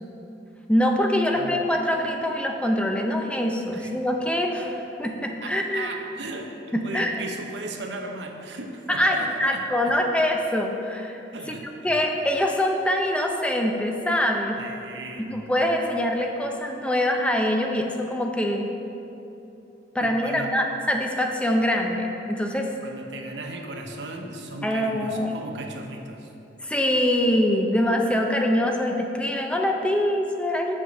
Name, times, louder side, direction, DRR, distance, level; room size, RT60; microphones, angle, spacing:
voice 1, 0.7-5.9 6.7-7.2 8.9-11.2 11.8-14.6 15.2-18.7 19.9-22.7 24.6-25.3 26.6-30.7, left 1 dB, 5° left, 2 dB, 0.5 m, -24 dB
voice 2, 5.4-10.0 11.3-12.0 14.6-15.5 20.0-20.5 22.8-26.3, right 2 dB, 85° right, 3 dB, 0.8 m, -37 dB
7.3 x 4.9 x 6.3 m, 2.9 s
head